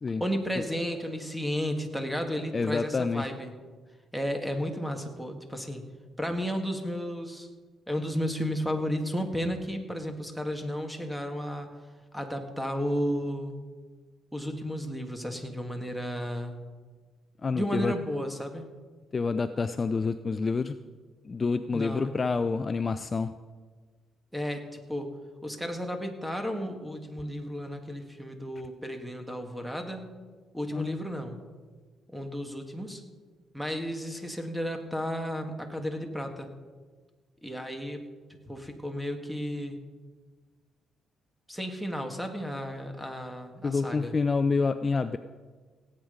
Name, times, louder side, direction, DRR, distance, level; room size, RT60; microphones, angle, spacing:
voice 1, 0.2-3.5 4.1-5.9 6.2-7.5 7.9-11.7 12.1-13.6 14.3-16.5 17.5-18.7 21.7-22.2 24.3-25.1 25.4-30.1 30.5-31.4 32.1-33.0 33.5-36.5 37.4-38.0 38.5-39.8 41.5-44.2, equal, 5° right, 5 dB, 1.8 m, -33 dB
voice 2, 2.5-3.2 17.4-17.9 19.1-20.7 21.2-23.3 30.7-31.0 43.6-45.2, left 4 dB, 35° left, 11 dB, 0.5 m, -28 dB
17.5 x 8.8 x 5.2 m, 1.4 s
cardioid pair, 90°, 0 cm